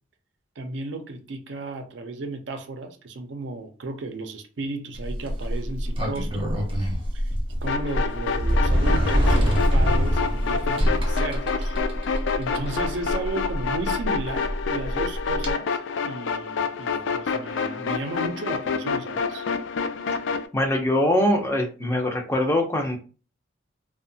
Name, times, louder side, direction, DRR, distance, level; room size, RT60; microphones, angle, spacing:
voice 1, 0.6-6.6 7.1-7.3 7.6-11.8 12.1-19.5, right 2 dB, 65° right, 0.5 m, -34 dB
Sliding door, 4.9-15.5, equal, 30° right, 0.6 m, -25 dB
sound 1, 7.7-20.5, left 5 dB, 75° left, 0.3 m, -28 dB
voice 2, 20.5-23.0, left 1 dB, 15° left, 0.4 m, -22 dB
2.8 x 2.1 x 2.6 m
head